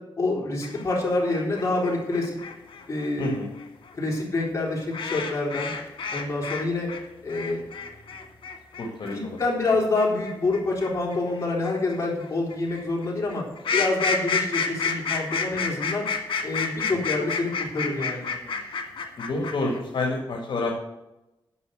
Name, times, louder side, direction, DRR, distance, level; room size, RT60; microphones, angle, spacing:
voice 1, 0.2-2.4 2.9-3.3 3.9-5.7 6.1-6.9 7.2-7.6 9.4-13.4 13.7-16.1 16.4-18.3, left 2 dB, 35° left, -4 dB, 4.0 m, -27 dB
sound 1, 0.6-6.6 6.9-19.8, left 5 dB, 80° left, 1.6 m, -30 dB
voice 2, 3.2-3.5 8.8-9.4 16.9-17.0 19.2-20.7, left 2 dB, 65° left, -1 dB, 1.9 m, -28 dB
9.7 x 6.3 x 7.7 m, 0.97 s
wide cardioid pair, 110°, 9 cm